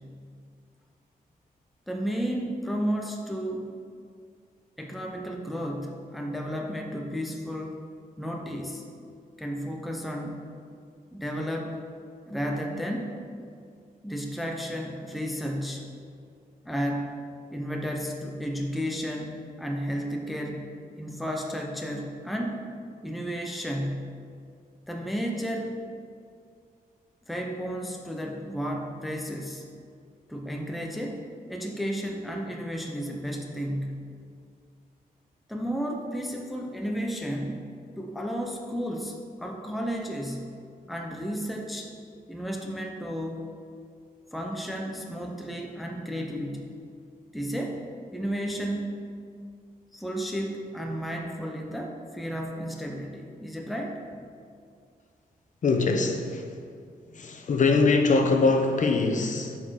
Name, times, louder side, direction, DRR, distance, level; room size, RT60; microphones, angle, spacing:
voice 1, 1.9-3.7 4.8-7.8 8.2-8.8 9.4-10.5 11.1-11.8 12.3-13.1 14.0-15.9 16.6-17.2 17.5-20.7 21.0-22.6 23.0-24.1 24.9-25.8 27.3-29.6 30.3-31.2 31.5-34.1 35.5-37.7 38.0-40.5 40.9-41.9 42.3-43.4 44.3-46.7 47.3-47.8 48.1-48.9 49.9-54.0, equal, ahead, 1 dB, 0.7 m, -32 dB
voice 2, 55.6-56.6 57.1-59.6, left 3 dB, 55° left, 4 dB, 1.0 m, -23 dB
8.8 x 4.4 x 6.3 m, 2.3 s
wide cardioid pair, 125°, 16 cm